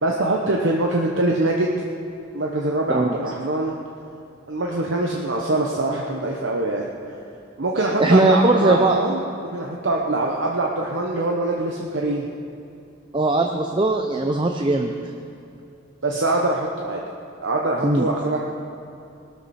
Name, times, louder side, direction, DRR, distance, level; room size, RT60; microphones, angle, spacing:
voice 1, 0.0-1.7 2.3-3.7 4.5-6.8 7.6-12.3 16.0-17.0 17.4-18.4, right 2 dB, 60° right, -1 dB, 1.0 m, -23 dB
voice 2, 8.0-9.0 13.1-14.9 17.8-18.1, right 2 dB, 25° right, 4 dB, 0.6 m, -19 dB
19.5 x 12.5 x 4.3 m, 2.7 s
head